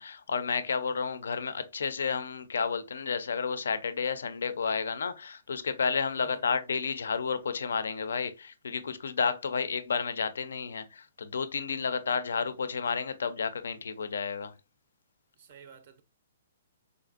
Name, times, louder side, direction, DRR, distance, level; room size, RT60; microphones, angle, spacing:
voice 1, 0.0-14.5, left 5 dB, 85° left, 0.4 m, -31 dB
voice 2, 6.2-6.5 15.4-16.0, right 7 dB, 50° right, 0.4 m, -52 dB
3.8 x 2.5 x 2.4 m
hypercardioid pair, 150°, 0 cm